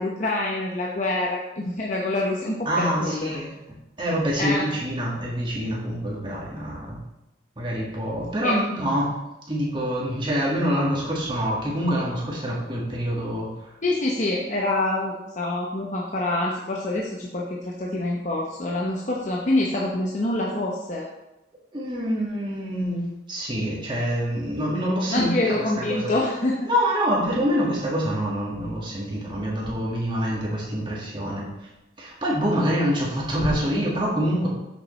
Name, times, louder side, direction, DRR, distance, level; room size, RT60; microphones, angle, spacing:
voice 1, 0.0-3.3 4.4-4.6 8.4-8.6 13.8-21.1 25.1-26.7, left 2 dB, 40° left, -2 dB, 0.8 m, -26 dB
voice 2, 2.7-3.5 4.0-7.0 7.6-9.1 9.5-13.7 21.7-26.1 26.7-31.7 32.0-34.5, equal, 25° right, -4 dB, 1.8 m, -26 dB
8.0 x 6.6 x 3.2 m, 0.93 s
head